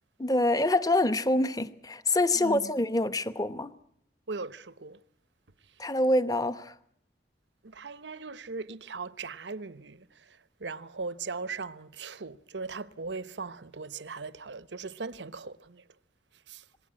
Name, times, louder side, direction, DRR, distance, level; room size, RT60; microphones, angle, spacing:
voice 1, 0.2-3.7 5.8-6.7, left 1 dB, 20° left, 1.0 m, -26 dB
voice 2, 2.3-2.7 4.3-5.0 7.6-15.8 16.5-16.6, right 4 dB, 85° right, 1.0 m, -39 dB
26.5 x 20.5 x 8.7 m
head